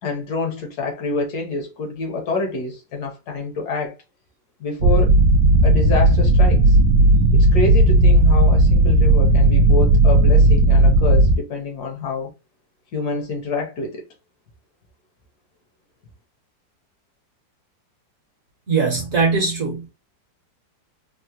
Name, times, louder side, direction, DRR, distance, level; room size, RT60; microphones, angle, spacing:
voice 1, 0.0-4.0 4.6-5.2 5.6-6.8 7.3-12.3 12.9-14.0, left 3 dB, 65° left, 1.2 m, -27 dB
sound 1, 4.8-11.4, right 1 dB, 70° right, 1.1 m, -14 dB
voice 2, 18.7-19.9, right 4 dB, 50° right, 1.1 m, -20 dB
3.5 x 2.1 x 2.7 m
omnidirectional pair, 2.0 m